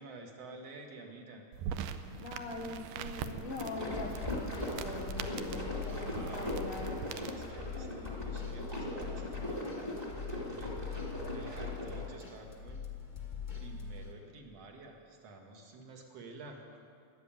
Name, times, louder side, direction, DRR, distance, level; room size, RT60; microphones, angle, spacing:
voice 1, 0.0-1.5 5.7-6.7 7.2-9.7 10.5-10.7 11.3-12.8 13.5-16.6, right 3 dB, 50° right, 2 dB, 2.4 m, -51 dB
sound 1, 1.5-7.5, right 8 dB, 80° right, 2.0 m, -43 dB
voice 2, 2.1-7.1 7.8-8.0, left 3 dB, 75° left, 1 dB, 1.2 m, -43 dB
sound 2, 3.3-12.2, left 1 dB, 10° right, 1.7 m, -40 dB
sound 3, 3.9-14.1, left 6 dB, 50° left, 0.5 m, -43 dB
14.5 x 11.5 x 8.9 m, 2.3 s
omnidirectional pair, 4.2 m